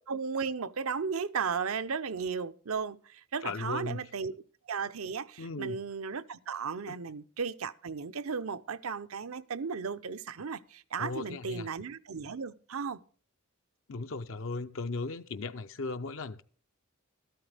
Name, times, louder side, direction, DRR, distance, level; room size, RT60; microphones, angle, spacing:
voice 1, 0.1-4.3 4.7-13.0, right 5 dB, 75° right, 0.7 m, -35 dB
voice 2, 3.4-4.1 5.4-5.8 11.0-11.7 13.9-16.4, left 3 dB, 65° left, 0.6 m, -37 dB
13.5 x 12.5 x 3.4 m
head